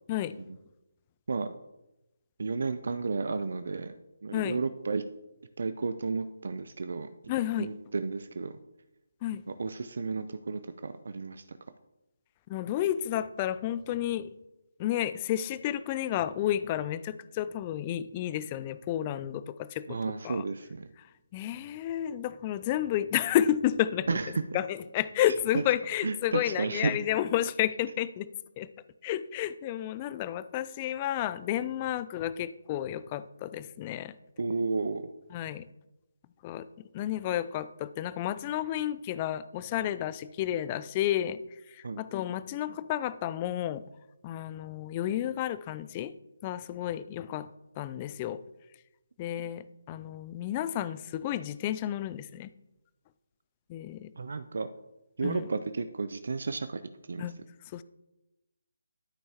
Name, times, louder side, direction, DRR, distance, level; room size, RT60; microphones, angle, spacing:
voice 1, 2.4-4.0 4.2-5.0 5.6-7.1 7.6-8.5 9.6-11.6 19.9-20.9 24.1-24.4 26.0-27.0 34.4-35.1 41.8-42.0 54.2-54.7 55.2-56.8 57.1-57.3, right 4 dB, 65° right, 11 dB, 0.5 m, -32 dB
voice 2, 7.3-7.7 9.2-9.4 12.5-14.3 14.8-20.0 20.2-20.4 21.3-24.2 24.5-28.3 28.6-28.7 29.0-34.2 35.3-35.7 36.4-36.7 36.9-41.4 41.7-43.8 44.2-46.1 46.4-47.5 47.8-48.4 49.2-52.5 53.7-54.1 55.2-55.4 57.2-57.3 57.7-57.8, left 12 dB, 25° left, 15 dB, 0.3 m, -31 dB
12.5 x 5.5 x 2.9 m, 0.96 s
figure-of-eight pair, 155°, 0 cm